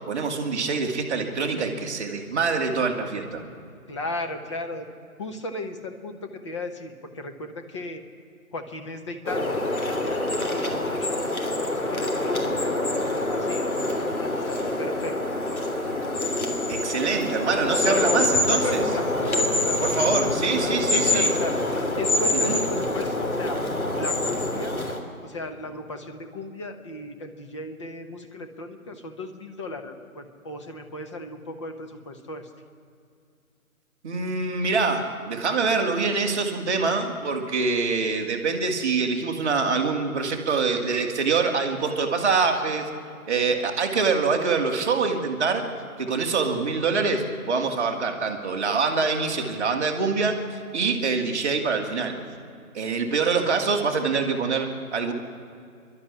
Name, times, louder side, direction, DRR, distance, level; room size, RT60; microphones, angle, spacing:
voice 1, 0.1-3.4 16.7-18.8 19.8-21.3 22.4-22.6 34.0-42.9 43.3-45.7 46.0-52.2 52.7-55.1, right 4 dB, 10° right, -8 dB, 1.0 m, -25 dB
voice 2, 3.9-4.8 5.2-8.0 8.5-11.3 11.7-12.8 13.3-15.2 17.8-20.3 20.6-21.6 22.0-23.6 23.9-24.7 25.2-32.5, left 2 dB, 20° left, 6 dB, 1.0 m, -35 dB
sound 1, 9.3-25.0, left 2 dB, 75° left, 3.4 m, -26 dB
27.5 x 11.5 x 9.8 m, 2.3 s
figure-of-eight pair, 155°, 43 cm